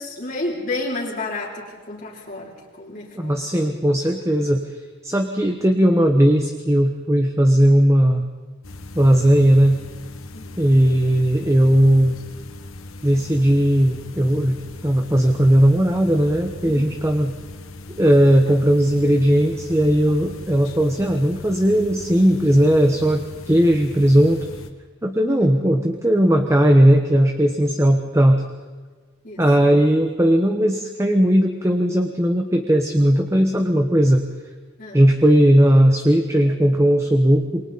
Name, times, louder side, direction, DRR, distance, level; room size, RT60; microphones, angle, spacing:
voice 1, 0.0-2.5 2.8-3.4 10.3-10.5 16.7-16.9 25.3-25.5 29.2-29.4 34.8-35.0, left 2 dB, 45° left, -6 dB, 3.5 m, -31 dB
voice 2, 3.1-4.7 5.0-8.2 8.9-9.8 10.6-12.2 13.0-17.3 18.0-24.4 25.0-28.4 29.4-34.2 34.9-37.6, equal, 15° right, 4 dB, 1.1 m, -17 dB
sound 1, 8.6-24.7, left 2 dB, 85° left, 1.7 m, -39 dB
28.0 x 23.5 x 4.2 m, 1.4 s
head